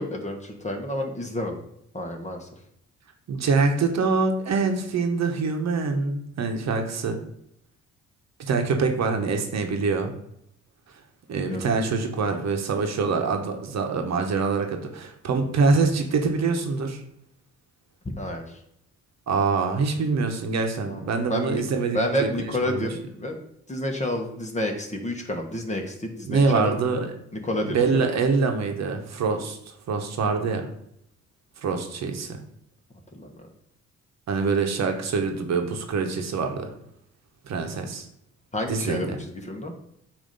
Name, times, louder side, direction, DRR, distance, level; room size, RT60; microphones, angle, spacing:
voice 1, 0.0-1.6 1.9-2.5 11.4-11.6 18.0-18.4 20.9-21.0 21.3-21.6 21.9-23.4 23.7-26.8 27.4-28.0 33.2-33.3 38.5-39.7, left 1 dB, 25° left, 3 dB, 1.4 m, -29 dB
voice 2, 3.3-7.2 8.4-10.1 11.3-17.0 19.3-22.9 26.2-27.1 27.6-30.7 31.6-32.4 34.3-36.7 37.4-38.1 38.7-39.2, right 4 dB, 60° right, 4 dB, 1.1 m, -25 dB
8.5 x 2.9 x 5.3 m, 0.75 s
cardioid pair, 90°, 30 cm